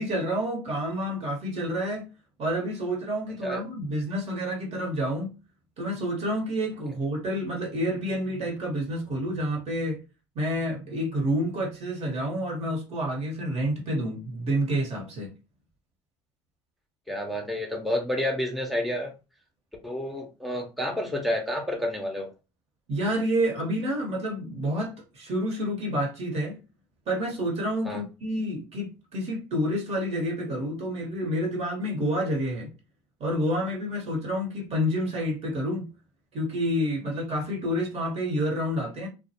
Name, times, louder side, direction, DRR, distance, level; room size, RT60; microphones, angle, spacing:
voice 1, 0.0-2.1 2.4-5.3 5.8-10.0 10.3-15.3 22.9-26.6 27.1-32.7 33.2-35.9 36.3-39.1, equal, 45° right, 1.2 m, -29 dB
voice 2, 17.1-19.1 19.8-22.3 27.8-28.0, left 1 dB, ahead, 0.7 m, -29 dB
2.3 x 2.2 x 2.8 m
hypercardioid pair, 80°, 15 cm